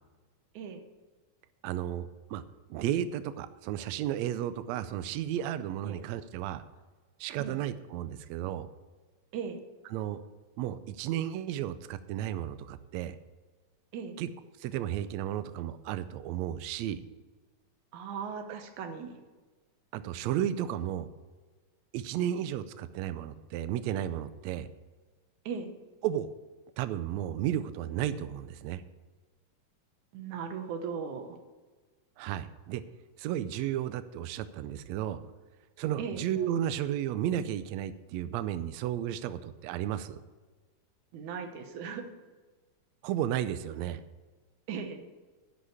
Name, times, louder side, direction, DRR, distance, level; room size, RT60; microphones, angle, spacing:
voice 1, 1.6-2.4 2.7-6.6 7.2-8.7 9.9-10.2 10.6-13.1 14.2-14.3 14.6-17.0 19.9-21.1 21.9-24.7 26.0-26.3 26.8-28.8 32.2-32.8 33.2-35.2 35.8-40.2 43.0-44.0, right 11 dB, 90° right, 12 dB, 1.5 m, -33 dB
voice 2, 17.9-19.2 25.5-25.7 30.1-31.4 36.0-36.2 41.1-42.0 44.7-45.1, right 6 dB, 70° right, 6 dB, 2.4 m, -38 dB
11.0 x 6.3 x 8.1 m, 1.3 s
omnidirectional pair, 3.7 m